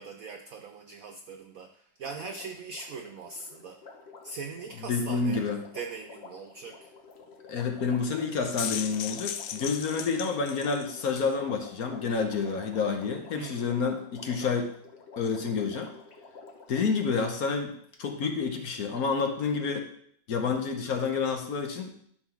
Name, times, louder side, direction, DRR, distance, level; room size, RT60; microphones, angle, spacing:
voice 1, 0.0-3.8 4.2-5.4 5.7-6.9 13.3-13.7, right 4 dB, 80° right, 7 dB, 0.7 m, -41 dB
Water, 2.0-17.0 17.9-18.0, left 4 dB, 40° left, 1.2 m, -50 dB
voice 2, 4.9-5.6 7.5-14.7 15.2-15.9 16.7-19.9 20.3-21.9, left 5 dB, 55° left, 5 dB, 1.2 m, -29 dB
sound 1, 8.3-11.3, left 10 dB, 80° left, 0.8 m, -37 dB
11.0 x 4.0 x 5.8 m, 0.64 s
omnidirectional pair, 2.1 m